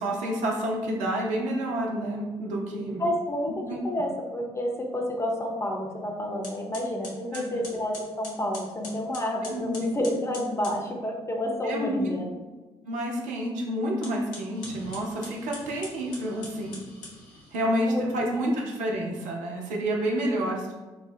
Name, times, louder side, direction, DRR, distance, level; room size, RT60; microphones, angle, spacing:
voice 1, 0.0-3.0 3.7-3.8 7.3-7.7 9.4-9.9 11.6-12.1 12.8-16.8 17.5-20.7, right 1 dB, 60° right, -1 dB, 0.6 m, -29 dB
voice 2, 3.0-12.3 17.7-18.1 18.4-18.5, left 1 dB, 20° left, 0 dB, 0.7 m, -30 dB
sound 1, 5.9-6.0 6.4-10.8 13.9-17.6, left 2 dB, 60° left, 0.8 m, -44 dB
4.3 x 2.2 x 2.4 m, 1.2 s
figure-of-eight pair, 45°, 15 cm